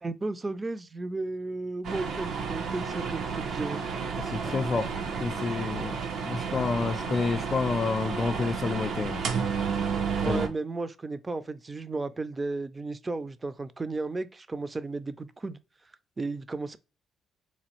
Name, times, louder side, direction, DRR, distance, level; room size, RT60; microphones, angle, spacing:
voice 1, 0.0-3.8 10.2-15.6 16.2-16.8, right 3 dB, 25° right, 0.4 m, -34 dB
sound 1, 1.8-10.5, right 6 dB, 70° right, 0.6 m, -31 dB
voice 2, 4.3-6.0 6.3-9.2 10.2-10.4, left 4 dB, 40° left, 0.4 m, -29 dB
4.1 x 2.3 x 3.0 m
cardioid pair, 90°, 0 cm